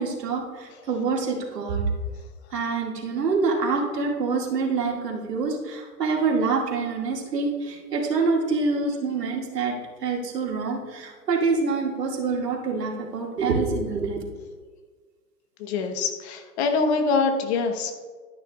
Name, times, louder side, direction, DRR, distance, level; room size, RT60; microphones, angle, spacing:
voice 1, 0.0-1.8 2.5-9.7 10.0-14.2, right 4 dB, 85° right, -1 dB, 2.4 m, -26 dB
voice 2, 15.6-17.9, left 4 dB, 45° left, 5 dB, 1.3 m, -24 dB
12.0 x 10.0 x 2.5 m, 1.5 s
hypercardioid pair, 140°, 47 cm